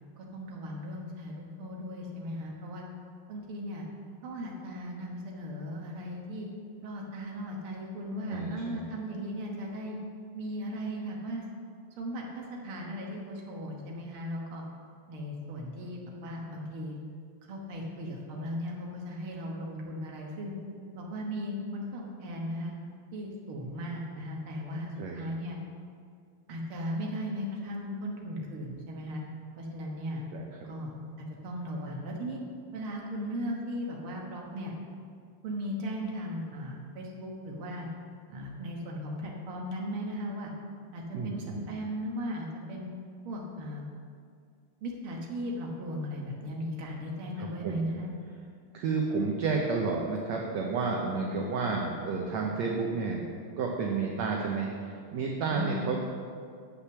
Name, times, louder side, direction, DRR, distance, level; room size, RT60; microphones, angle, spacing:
voice 1, 0.2-2.8 3.3-3.8 4.2-6.5 6.8-10.0 10.3-11.4 12.0-14.6 15.1-17.0 17.5-20.5 20.9-22.7 23.1-25.6 26.5-29.2 29.6-30.2 30.6-30.9 31.2-32.4 32.7-34.7 35.4-37.9 38.3-40.5 40.9-42.9 43.2-43.9 44.8-48.1 55.5-55.7, equal, 65° right, -1 dB, 1.3 m, -37 dB
voice 2, 8.3-8.9 25.0-25.2 30.3-30.7 41.1-41.7 47.4-47.9 48.7-53.3 53.6-56.0, right 4 dB, 85° right, 0 dB, 1.5 m, -31 dB
9.9 x 5.8 x 6.9 m, 2.2 s
omnidirectional pair, 4.2 m